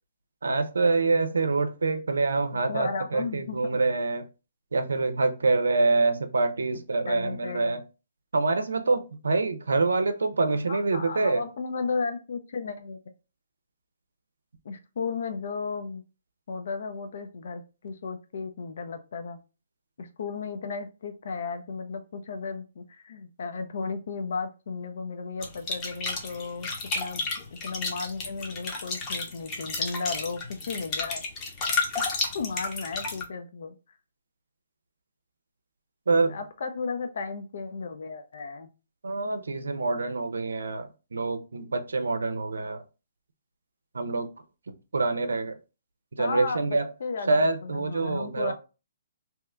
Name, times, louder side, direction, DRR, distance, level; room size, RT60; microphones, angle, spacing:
voice 1, 0.4-4.2 4.7-7.8 8.3-11.4 36.1-36.4 39.0-42.8 43.9-44.3 44.9-45.6 46.2-46.9 47.3-48.5, right 3 dB, 85° right, 9 dB, 0.5 m, -26 dB
voice 2, 2.5-3.8 7.1-7.7 10.7-13.0 14.6-16.0 16.5-19.4 20.0-27.2 27.5-31.2 32.0-33.8 36.3-38.7 46.2-48.5, left 4 dB, 65° left, 8 dB, 0.6 m, -34 dB
sound 1, 25.4-33.2, left 3 dB, 25° left, 0.8 m, -32 dB
2.8 x 2.2 x 3.6 m, 0.31 s
hypercardioid pair, 145°, 0 cm